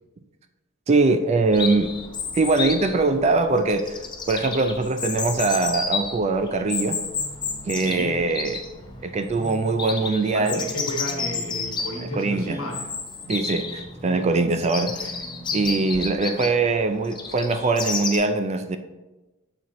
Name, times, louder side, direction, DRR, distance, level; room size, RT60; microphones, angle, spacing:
voice 1, 0.9-1.9 2.3-4.0 4.3-7.0 7.7-8.6 9.0-10.6 12.0-12.6 13.3-15.1 15.5-18.8, right 3 dB, 30° right, 0.3 m, -22 dB
Chirp tweet, 1.5-18.2, left 5 dB, 20° left, 0.5 m, -31 dB
sound 1, 7.1-16.0, right 1 dB, 5° left, 1.2 m, -42 dB
voice 2, 7.7-8.2 10.3-12.9, left 1 dB, 70° left, 1.4 m, -32 dB
6.9 x 4.5 x 3.7 m
head